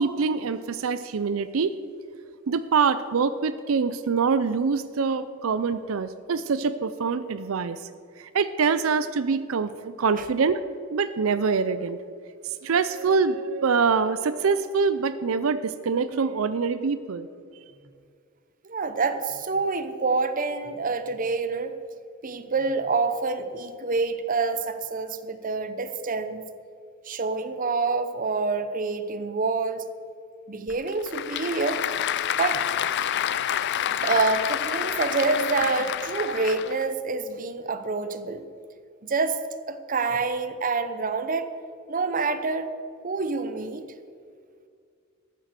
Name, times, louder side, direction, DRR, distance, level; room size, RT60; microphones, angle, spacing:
voice 1, 0.0-1.8 2.5-7.8 8.3-10.6 10.9-12.0 12.6-17.3, right 5 dB, 85° right, 13 dB, 0.5 m, -24 dB
voice 2, 18.7-21.8 22.2-26.4 27.1-29.9 30.5-31.8 32.4-32.6 32.9-33.0 34.0-38.4 39.0-39.4 39.7-41.5 41.9-42.7 43.0-43.8, right 4 dB, 40° right, 10 dB, 0.7 m, -27 dB
Applause / Crowd, 30.7-36.9, left 10 dB, 55° left, 0.4 m, -28 dB
13.5 x 7.6 x 6.7 m, 2.2 s
head